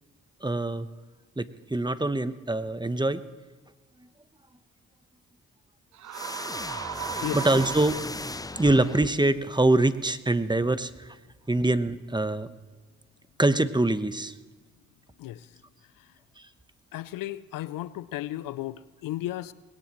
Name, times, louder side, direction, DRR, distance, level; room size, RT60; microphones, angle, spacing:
voice 1, 0.4-0.9 1.4-3.2 7.3-8.0 8.6-11.1 11.5-12.5 13.4-14.3, right 2 dB, 15° right, 1.0 m, -24 dB
sound 1, 5.9-8.6, right 10 dB, 60° right, 0.6 m, -37 dB
sound 2, 6.1-9.5, left 2 dB, 10° left, 0.5 m, -37 dB
voice 2, 6.9-7.4 15.2-15.5 16.9-19.5, left 15 dB, 85° left, 0.5 m, -35 dB
20.5 x 17.5 x 3.1 m
supercardioid pair, 45°, 33 cm